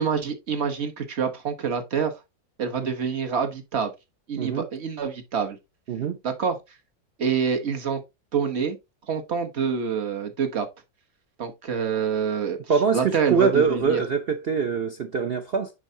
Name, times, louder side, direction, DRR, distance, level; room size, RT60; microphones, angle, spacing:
voice 1, 0.0-2.1 2.6-3.9 4.3-5.6 6.2-6.6 7.2-8.0 8.3-8.8 9.1-10.7 11.4-12.6 12.9-14.0, right 6 dB, 40° right, 1.2 m, -26 dB
voice 2, 4.4-4.7 5.9-6.2 12.7-15.7, right 5 dB, 70° right, 0.5 m, -23 dB
10.0 x 4.0 x 2.7 m
omnidirectional pair, 1.9 m